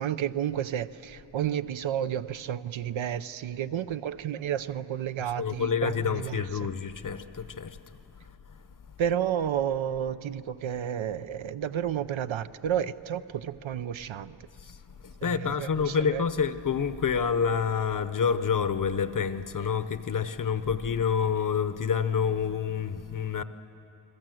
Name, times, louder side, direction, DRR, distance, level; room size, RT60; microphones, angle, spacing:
voice 1, 0.0-6.7 9.0-14.4 15.2-16.2, right 9 dB, 70° right, 0.7 m, -31 dB
voice 2, 5.2-7.8 8.2-8.6 14.5-23.4, left 6 dB, 40° left, 0.8 m, -28 dB
29.5 x 21.5 x 7.7 m
wide cardioid pair, 160°, 49 cm